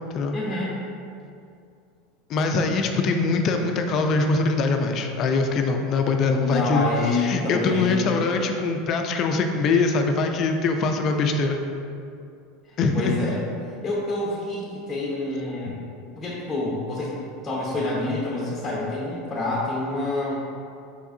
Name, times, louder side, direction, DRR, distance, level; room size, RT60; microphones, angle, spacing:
voice 1, 0.3-0.8 6.4-8.2 12.7-13.4 13.8-15.8 16.2-20.4, left 2 dB, 20° left, -4 dB, 0.8 m, -27 dB
voice 2, 2.3-6.9 7.1-11.6 12.8-13.2, left 3 dB, 45° left, 4 dB, 0.4 m, -23 dB
4.6 x 4.2 x 2.7 m, 2.5 s
hypercardioid pair, 85°, 0 cm